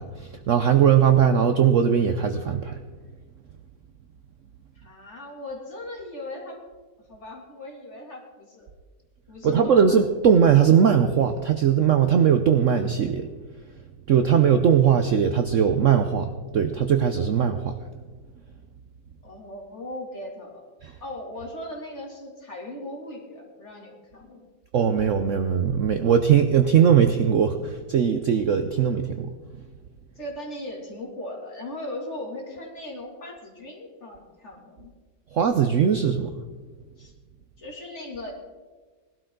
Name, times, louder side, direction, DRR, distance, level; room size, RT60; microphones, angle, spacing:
voice 1, 0.0-2.8 9.4-13.3 14.1-17.7 20.8-20.9 24.7-29.3 35.3-36.3, right 8 dB, 60° right, 8 dB, 0.8 m, -20 dB
voice 2, 4.7-6.6 7.1-8.7 9.3-10.0 19.2-20.6 21.0-24.5 30.1-34.9 37.0-37.1 37.6-38.3, left 1 dB, 40° left, -2 dB, 3.2 m, -38 dB
19.0 x 12.5 x 3.9 m, 1.4 s
omnidirectional pair, 1.9 m